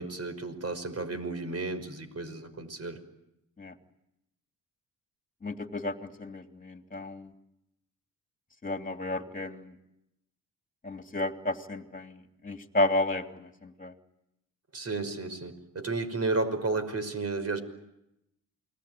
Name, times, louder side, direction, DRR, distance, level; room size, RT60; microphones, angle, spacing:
voice 1, 0.0-3.0 14.7-17.6, right 3 dB, 40° right, 9 dB, 5.6 m, -32 dB
voice 2, 5.4-7.3 8.6-9.7 10.8-13.9, left 2 dB, 20° left, 5 dB, 3.0 m, -32 dB
29.0 x 21.0 x 9.3 m, 0.86 s
cardioid pair, 75°, 38 cm